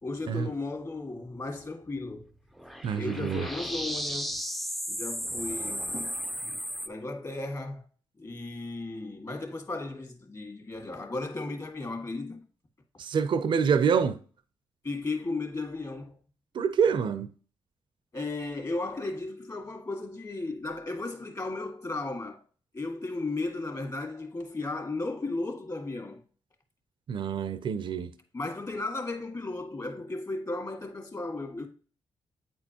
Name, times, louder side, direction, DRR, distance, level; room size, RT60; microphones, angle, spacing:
voice 1, 0.0-2.3 2.9-4.4 4.9-7.8 8.2-12.5 14.8-16.2 18.1-22.4 22.7-26.2 28.3-31.7, left 2 dB, 40° left, 1.7 m, -35 dB
sound 1, 2.6-6.9, equal, ahead, 0.5 m, -34 dB
voice 2, 2.8-3.4 13.0-14.2 16.5-17.3 27.1-28.1, right 6 dB, 60° right, 0.5 m, -26 dB
8.5 x 4.4 x 2.9 m
cardioid pair, 65°, 9 cm